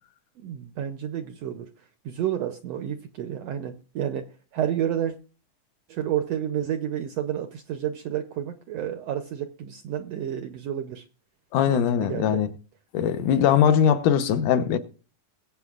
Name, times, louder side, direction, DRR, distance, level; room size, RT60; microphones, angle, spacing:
voice 1, 0.4-1.7 2.0-4.3 4.5-5.1 5.9-11.0 11.7-12.4, right 10 dB, 75° right, 1.5 m, -30 dB
voice 2, 11.5-12.5 12.9-14.8, left 9 dB, 80° left, 2.5 m, -21 dB
21.0 x 8.5 x 2.4 m
omnidirectional pair, 3.7 m